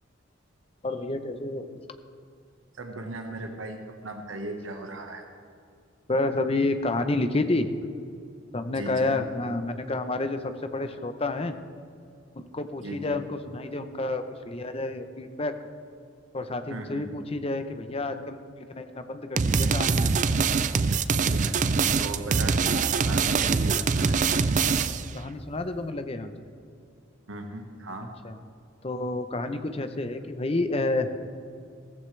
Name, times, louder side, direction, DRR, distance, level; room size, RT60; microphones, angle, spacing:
voice 1, 0.8-1.7 6.1-7.7 8.5-11.5 12.4-15.5 16.3-18.4 18.7-20.1 25.1-26.3 28.2-28.4 28.8-31.1, left 2 dB, 30° left, 9 dB, 0.7 m, -29 dB
voice 2, 2.8-5.2 8.7-9.1 12.8-13.2 16.7-17.1 21.2-24.3 27.3-28.1, right 2 dB, 85° right, 4 dB, 1.4 m, -37 dB
sound 1, 19.4-25.1, right 5 dB, 40° right, 0.4 m, -24 dB
16.0 x 14.5 x 3.3 m, 2.4 s
head